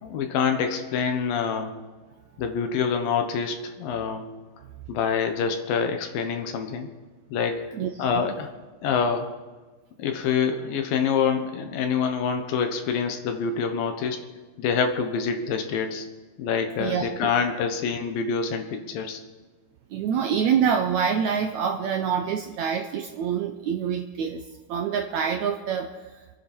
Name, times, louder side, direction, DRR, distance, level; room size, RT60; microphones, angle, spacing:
voice 1, 0.0-1.7 2.4-4.3 4.9-6.9 7.3-7.6 8.0-8.5 8.8-9.3 10.0-14.2 14.6-16.1 16.4-19.2, left 6 dB, 85° left, 6 dB, 3.0 m, -26 dB
voice 2, 7.7-8.3 16.8-17.3 19.9-24.4 24.7-25.9, right 7 dB, 75° right, 5 dB, 1.8 m, -26 dB
25.5 x 9.7 x 4.4 m, 1.3 s
omnidirectional pair, 4.0 m